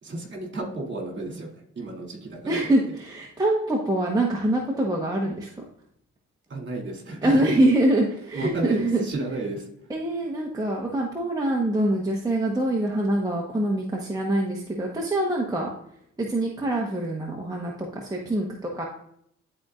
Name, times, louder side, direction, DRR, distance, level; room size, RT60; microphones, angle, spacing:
voice 1, 0.0-3.0 6.5-7.6 8.3-9.7, right 2 dB, 40° right, 1 dB, 2.9 m, -33 dB
voice 2, 2.5-5.5 7.2-9.0 9.9-15.7 16.2-18.9, right 1 dB, 10° right, -2 dB, 1.2 m, -24 dB
11.5 x 4.3 x 2.5 m, 0.70 s
cardioid pair, 90°, 30 cm